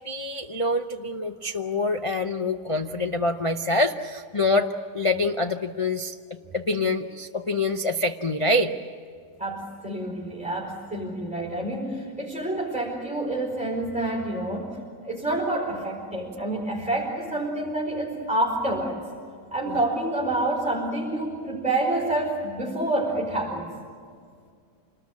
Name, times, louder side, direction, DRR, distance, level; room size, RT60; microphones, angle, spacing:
voice 1, 0.0-4.7 4.9-6.2 6.5-8.7 19.7-19.8, left 2 dB, 60° left, 4 dB, 0.3 m, -25 dB
voice 2, 9.4-19.0 19.5-23.7, right 1 dB, 5° right, -3 dB, 4.5 m, -28 dB
27.0 x 20.0 x 8.5 m, 2.1 s
omnidirectional pair, 1.8 m